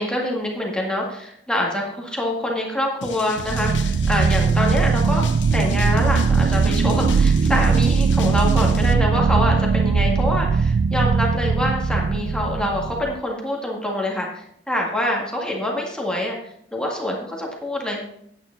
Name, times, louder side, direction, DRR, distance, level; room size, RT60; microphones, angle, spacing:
voice 1, 0.0-5.2 5.5-16.4 16.7-18.1, left 1 dB, 5° left, -1 dB, 1.8 m, -25 dB
sound 1, 3.0-8.9, left 5 dB, 75° left, 0.8 m, -35 dB
sound 2, 3.4-13.2, right 5 dB, 50° right, 0.3 m, -19 dB
9.7 x 9.1 x 3.9 m, 0.69 s
head